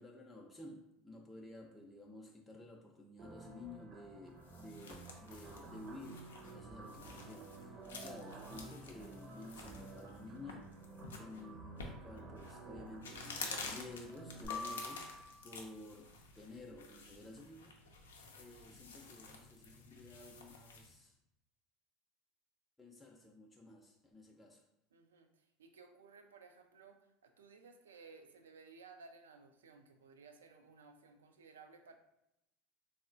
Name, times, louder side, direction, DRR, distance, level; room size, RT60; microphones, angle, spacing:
voice 1, 0.0-10.7 11.2-15.1 15.4-17.7 18.4-21.2 22.8-24.6, left 2 dB, 10° left, -1 dB, 0.4 m, -53 dB
sound 1, 3.2-14.5, right 3 dB, 35° right, 0.6 m, -52 dB
sound 2, 4.2-20.9, left 4 dB, 85° left, 0.4 m, -51 dB
sound 3, 14.5-15.8, left 4 dB, 45° left, 0.7 m, -45 dB
voice 2, 24.9-31.9, right 4 dB, 85° right, 6 dB, 0.3 m, -58 dB
3.5 x 2.0 x 2.5 m, 0.87 s
hypercardioid pair, 85°, 0 cm